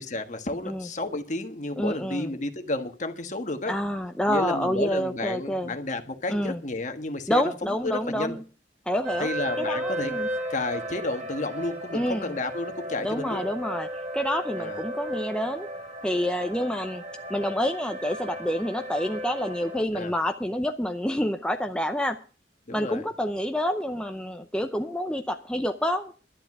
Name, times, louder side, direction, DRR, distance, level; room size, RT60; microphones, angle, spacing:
voice 1, 0.0-3.8 4.3-7.5 7.8-8.4 9.2-10.1 10.5-13.4 14.5-14.8 19.9-20.1 22.7-23.0, left 2 dB, 45° left, 7 dB, 1.5 m, -31 dB
voice 2, 1.8-2.3 3.7-5.7 6.3-6.6 7.3-8.4 8.9-9.3 9.6-10.3 11.9-12.3 13.0-15.7 16.0-17.0 17.3-22.2 22.7-26.1, equal, 5° left, 5 dB, 0.6 m, -28 dB
sound 1, 9.0-19.8, right 1 dB, 40° right, 2.7 m, -35 dB
11.5 x 10.0 x 6.1 m, 0.38 s
head